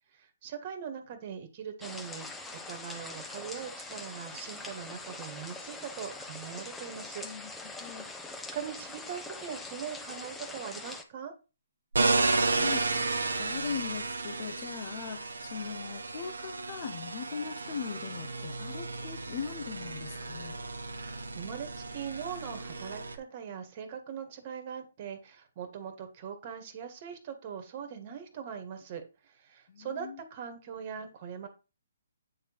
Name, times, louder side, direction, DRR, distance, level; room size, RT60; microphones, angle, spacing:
voice 1, 0.1-7.3 8.5-11.3 20.9-31.5, right 7 dB, 40° right, 8 dB, 1.6 m, -41 dB
sound 1, 1.8-11.0, left 3 dB, 10° left, 0.9 m, -43 dB
voice 2, 7.2-8.1 12.5-20.6 29.7-30.2, left 7 dB, 45° left, 5 dB, 1.0 m, -40 dB
sound 2, 11.9-23.2, right 3 dB, 80° right, 1.1 m, -33 dB
8.8 x 3.8 x 4.6 m, 0.30 s
hypercardioid pair, 140°, 0 cm